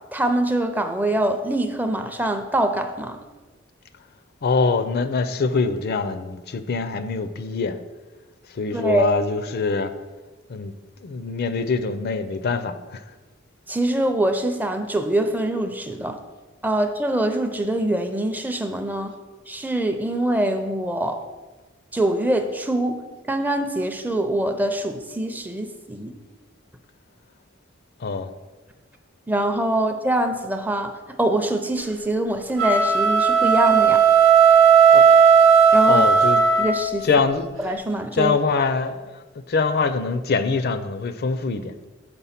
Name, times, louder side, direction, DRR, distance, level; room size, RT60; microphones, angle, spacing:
voice 1, 0.1-3.2 8.7-9.0 13.7-16.2 16.6-19.2 19.5-21.2 21.9-23.0 23.3-26.1 29.3-34.0 34.9-35.0 35.7-36.0 36.6-37.1 37.6-38.3, right 1 dB, 10° right, 7 dB, 0.5 m, -24 dB
voice 2, 4.4-7.8 8.5-9.9 10.5-10.7 11.0-13.0 28.0-28.3 35.9-36.4 37.0-37.5 38.1-41.8, left 4 dB, 50° left, 11 dB, 0.5 m, -24 dB
sound 1, 32.5-37.1, right 6 dB, 80° right, 0.8 m, -15 dB
6.9 x 4.5 x 5.7 m, 1.2 s
head